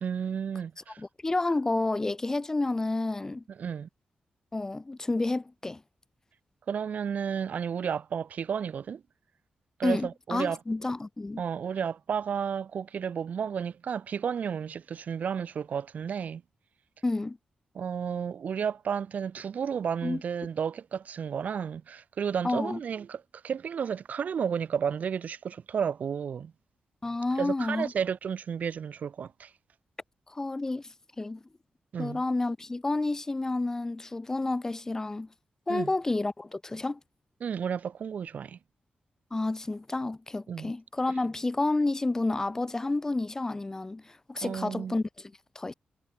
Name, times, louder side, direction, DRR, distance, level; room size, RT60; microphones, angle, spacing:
voice 1, 0.0-1.0 3.6-3.9 6.7-9.0 9.8-10.6 11.4-16.4 17.7-26.5 27.4-29.5 31.9-32.2 35.7-35.9 37.4-38.6 40.5-40.7 44.4-45.0, right 7 dB, 60° right, 1.0 m, -32 dB
voice 2, 1.0-3.4 4.5-5.8 9.8-11.4 17.0-17.4 20.0-20.2 22.4-22.8 27.0-27.9 30.3-31.4 32.0-35.3 35.7-37.0 39.3-45.7, left 2 dB, 20° left, 0.8 m, -30 dB
wide cardioid pair, 155°, 3 cm